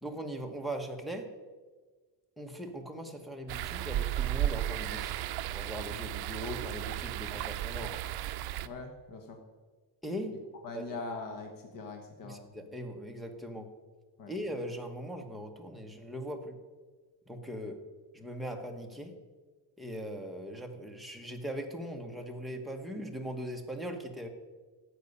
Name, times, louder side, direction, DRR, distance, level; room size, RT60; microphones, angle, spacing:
voice 1, 0.0-1.3 2.4-5.2 5.5-8.0 10.0-10.4 10.7-11.0 12.2-13.7 14.3-16.6 17.3-17.8 18.1-19.1 19.8-24.3, equal, ahead, 1 dB, 1.1 m, -40 dB
sound 1, 3.5-8.7, right 13 dB, 65° right, 0.5 m, -34 dB
voice 2, 8.6-9.4 10.6-12.4 14.2-14.3, left 3 dB, 50° left, 4 dB, 1.3 m, -41 dB
13.0 x 8.2 x 5.5 m, 1.4 s
cardioid pair, 160°, 41 cm